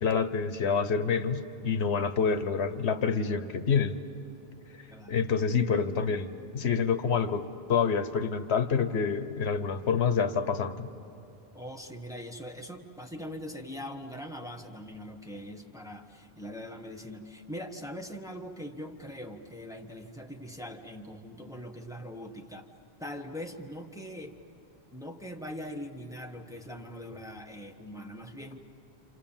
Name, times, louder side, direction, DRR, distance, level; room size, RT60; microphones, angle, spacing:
voice 1, 0.0-4.0 5.1-6.3 6.5-10.9, left 6 dB, 85° left, 10 dB, 1.2 m, -27 dB
voice 2, 11.5-22.7 23.0-24.4 24.9-28.6, equal, 5° right, 2 dB, 1.3 m, -42 dB
28.5 x 27.5 x 7.3 m, 2.7 s
omnidirectional pair, 1.1 m